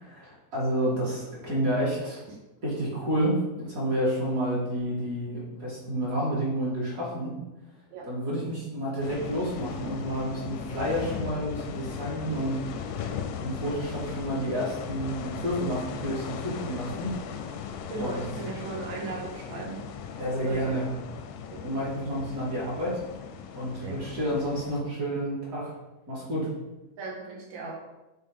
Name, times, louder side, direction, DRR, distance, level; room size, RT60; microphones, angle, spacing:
voice 1, 0.0-2.2 2.6-7.4 8.0-17.2 18.0-18.2 20.2-20.9 21.6-23.0 23.5-25.7 26.1-26.5, equal, 35° right, -6 dB, 1.7 m, -30 dB
sound 1, 9.0-24.8, left 7 dB, 85° left, 2.2 m, -38 dB
voice 2, 17.9-19.8 20.3-20.7 21.5-21.9 23.8-24.1 27.0-27.7, right 3 dB, 70° right, -2 dB, 2.6 m, -37 dB
8.2 x 3.8 x 3.6 m, 1.0 s
omnidirectional pair, 3.6 m